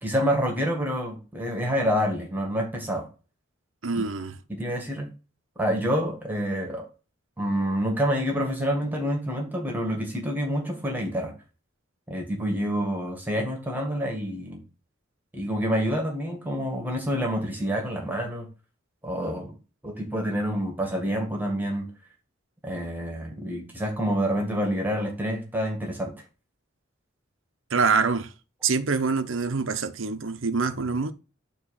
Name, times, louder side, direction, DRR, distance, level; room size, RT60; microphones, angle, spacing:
voice 1, 0.0-3.1 3.9-4.0 4.5-5.1 5.6-6.8 7.4-11.3 12.1-14.6 15.3-18.5 19.0-19.5 19.8-21.9 22.6-26.1, equal, 10° right, 1.9 m, -27 dB
voice 2, 3.8-4.3 27.7-28.3 28.6-31.1, right 4 dB, 85° right, 0.8 m, -25 dB
8.6 x 3.1 x 6.4 m
head